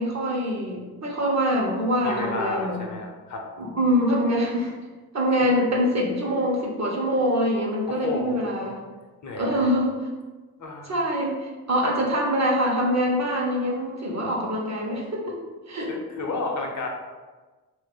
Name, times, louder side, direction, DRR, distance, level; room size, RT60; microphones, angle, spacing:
voice 1, 0.0-2.8 3.6-4.7 5.1-8.8 9.4-10.0 10.8-15.4 15.7-15.9, equal, 40° right, -1 dB, 1.1 m, -24 dB
voice 2, 2.0-3.5 7.9-8.8 9.2-9.7 10.6-10.9 11.8-11.9 15.9-16.9, left 3 dB, 45° left, 2 dB, 0.8 m, -31 dB
2.9 x 2.7 x 3.9 m, 1.3 s
supercardioid pair, 60°, 40 cm